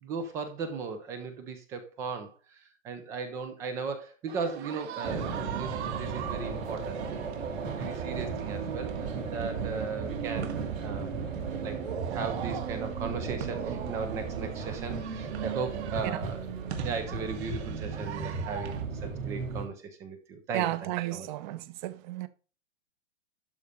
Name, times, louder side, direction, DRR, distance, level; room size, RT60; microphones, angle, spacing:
voice 1, 0.0-7.3 7.8-11.2 11.6-11.8 12.1-16.5 16.8-21.3, right 5 dB, 10° right, 0.3 m, -37 dB
sound 1, 4.3-18.8, right 9 dB, 55° right, 1.7 m, -42 dB
sound 2, 5.0-19.7, right 5 dB, 80° right, 3.0 m, -35 dB
voice 2, 20.5-22.3, right 15 dB, 35° right, 0.8 m, -33 dB
12.0 x 4.1 x 4.9 m
hypercardioid pair, 140°, 39 cm